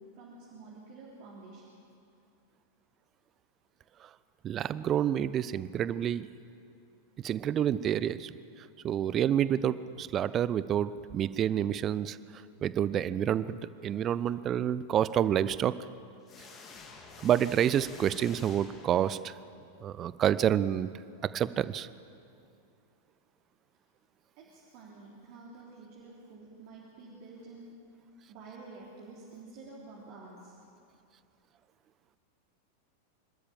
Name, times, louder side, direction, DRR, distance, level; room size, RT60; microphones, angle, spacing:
voice 1, 0.0-1.8 24.4-27.8 28.3-30.6, right 3 dB, 45° right, -5 dB, 3.4 m, -49 dB
voice 2, 4.4-6.3 7.2-8.3 8.8-12.2 12.6-15.7 17.2-19.3 19.8-20.9 21.3-21.9, right 10 dB, 30° right, 17 dB, 0.6 m, -28 dB
sound 1, 16.3-19.6, left 4 dB, 30° left, 2.9 m, -49 dB
26.0 x 13.0 x 7.7 m, 2.5 s
figure-of-eight pair, 90°, 0 cm